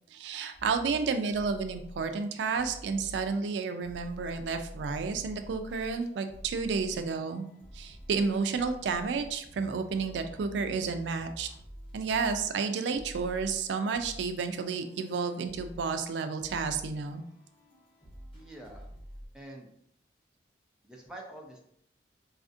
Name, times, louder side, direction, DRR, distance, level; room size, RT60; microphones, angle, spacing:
voice 1, 0.1-7.5 7.7-11.5 11.9-17.2, right 5 dB, 85° right, 8 dB, 0.3 m, -31 dB
sound 1, 0.5-2.2 2.5-19.3, equal, 30° left, 1.2 m, -48 dB
voice 2, 18.3-18.9 19.3-19.7 20.8-21.6, right 1 dB, 5° right, -1 dB, 0.5 m, -46 dB
4.1 x 2.4 x 2.5 m, 0.69 s
head